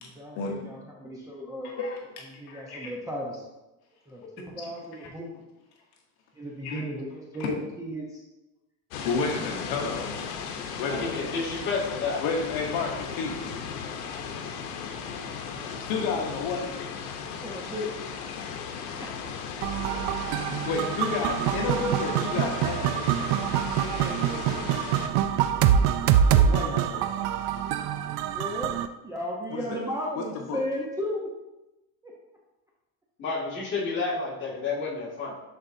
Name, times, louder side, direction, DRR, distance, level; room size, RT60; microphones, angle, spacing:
voice 1, 0.1-1.7 2.4-3.4 4.1-5.3 6.4-8.2 9.0-9.9 17.4-17.9 19.0-19.1 23.8-24.7 28.3-28.7 29.0-31.3 32.0-32.1, equal, 10° right, -3 dB, 0.7 m, -35 dB
voice 2, 1.6-2.9 4.5-5.1 6.6-6.8 7.4-7.5 9.0-10.3 10.8-11.4 12.2-13.4 15.7-16.7 20.5-23.1 26.3-27.1 29.5-29.8 30.5-30.6, left 4 dB, 55° left, 1 dB, 1.1 m, -31 dB
sound 1, 8.9-25.1, left 6 dB, 85° left, 0.9 m, -36 dB
voice 3, 10.8-12.2 33.2-35.3, left 4 dB, 25° left, -5 dB, 2.1 m, -30 dB
sound 2, 19.6-28.9, right 9 dB, 70° right, 0.6 m, -25 dB
10.5 x 4.2 x 2.7 m, 1.0 s
cardioid pair, 140°, 43 cm